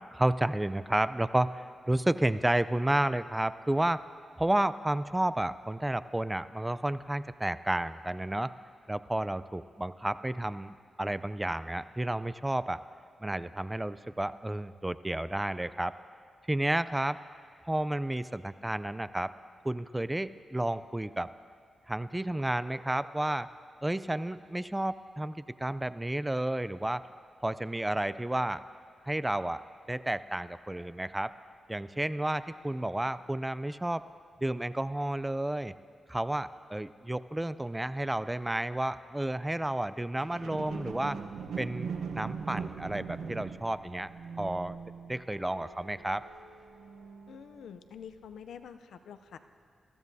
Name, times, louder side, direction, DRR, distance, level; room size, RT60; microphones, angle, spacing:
voice 1, 0.0-4.0 4.4-8.5 8.9-12.8 13.2-15.9 16.5-17.2 17.6-19.3 19.6-21.3 21.9-23.5 23.8-27.1 27.4-28.6 29.1-29.6 29.9-31.3 31.7-34.0 34.4-35.7 36.1-41.2 41.6-44.1 44.4-44.8 45.1-46.2, right 1 dB, 15° right, 15 dB, 0.4 m, -31 dB
sound 1, 40.2-47.6 48.2-48.3, right 6 dB, 90° right, 0.8 m, -41 dB
voice 2, 47.3-49.4, left 7 dB, 85° left, 10 dB, 0.5 m, -47 dB
21.5 x 14.5 x 2.7 m, 2.1 s
cardioid pair, 70°, 0 cm